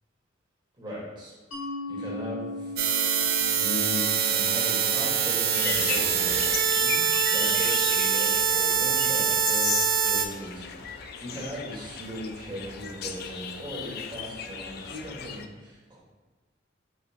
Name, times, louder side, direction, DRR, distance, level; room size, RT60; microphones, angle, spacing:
voice 1, 0.8-1.3 1.9-2.7 3.5-16.0, equal, 25° right, -7 dB, 1.3 m, -38 dB
Mallet percussion, 1.5-6.9, left 2 dB, 90° left, 1.2 m, -39 dB
sound 1, 2.8-10.3, right 7 dB, 50° right, 0.4 m, -24 dB
sound 2, 5.5-15.5, left 7 dB, 55° left, 0.3 m, -35 dB
5.1 x 2.2 x 4.2 m, 1.3 s
head